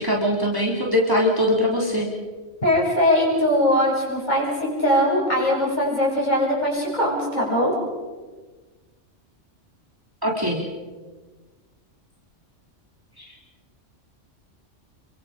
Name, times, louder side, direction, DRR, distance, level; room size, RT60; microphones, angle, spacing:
voice 1, 0.0-2.1 10.2-10.6 13.2-13.3, left 1 dB, 15° right, -2 dB, 3.4 m, -22 dB
voice 2, 2.6-7.7, equal, 35° left, -3 dB, 7.6 m, -21 dB
28.5 x 24.0 x 5.1 m, 1.3 s
omnidirectional pair, 1.3 m